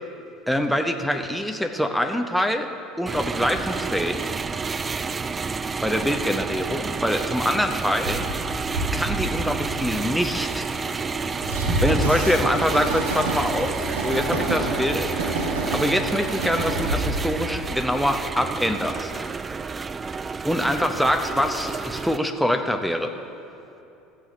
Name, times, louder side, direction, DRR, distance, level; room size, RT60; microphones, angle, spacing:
voice 1, 0.5-2.7 3.0-4.4 5.8-8.2 8.9-10.7 11.8-15.1 15.7-19.1 20.4-23.1, equal, ahead, 6 dB, 0.8 m, -24 dB
sound 1, 3.1-22.2, right 5 dB, 25° right, 0.3 m, -30 dB
Train, 8.1-18.5, right 2 dB, 75° right, 1.3 m, -28 dB
15.0 x 6.5 x 6.3 m, 2.9 s
figure-of-eight pair, 65°, 0 cm